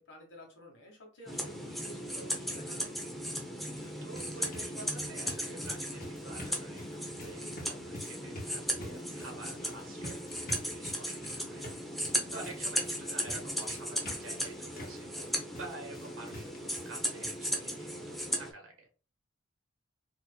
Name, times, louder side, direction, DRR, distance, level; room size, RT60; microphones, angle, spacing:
voice 1, 0.0-3.0 12.9-13.2, left 1 dB, 65° left, 1 dB, 1.5 m, -52 dB
sound 1, 1.3-18.5, equal, ahead, 0.7 m, -37 dB
sound 2, 3.7-17.0 17.2-17.4 17.8-17.9 18.2-18.3, left 1 dB, 45° left, 1.4 m, -48 dB
voice 2, 3.8-11.7 12.3-15.1 15.5-18.9, right 2 dB, 75° right, 2 dB, 1.3 m, -49 dB
3.9 x 3.0 x 2.2 m, 0.37 s
head